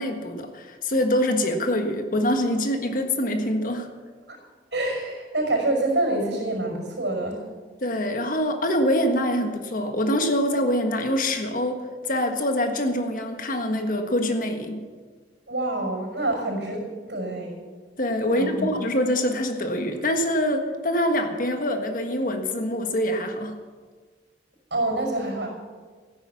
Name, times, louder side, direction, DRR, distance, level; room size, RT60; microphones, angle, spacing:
voice 1, 0.0-3.9 7.8-11.8 12.1-14.8 18.0-23.6, left 1 dB, 50° left, 5 dB, 1.6 m, -25 dB
voice 2, 4.7-7.5 15.5-16.8 17.1-17.6 18.3-18.7 24.7-25.5, right 2 dB, 75° right, 1 dB, 5.5 m, -26 dB
14.0 x 10.5 x 7.2 m, 1.5 s
head